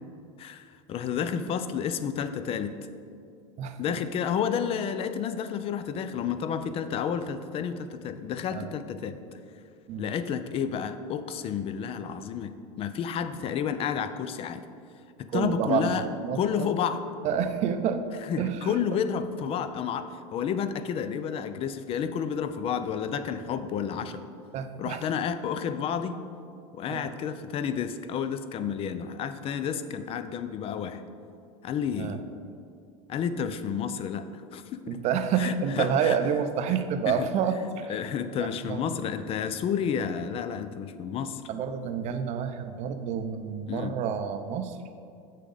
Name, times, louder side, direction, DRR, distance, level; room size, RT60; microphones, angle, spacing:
voice 1, 0.4-2.7 3.8-9.2 10.0-12.5 12.8-14.6 15.2-16.0 16.4-17.0 18.3-24.2 24.8-26.2 26.7-31.0 31.6-32.2 33.1-35.0 35.4-36.2 37.1-37.3 37.9-41.4 43.7-43.9, left 7 dB, 35° left, 11 dB, 0.5 m, -30 dB
voice 2, 15.3-16.7 17.2-18.1 18.4-19.0 24.5-25.0 26.9-27.1 32.0-32.2 34.9-38.0 38.4-38.9 41.5-44.8, right 7 dB, 45° right, 8 dB, 0.6 m, -29 dB
8.3 x 6.5 x 3.9 m, 2.5 s
supercardioid pair, 120°, 17 cm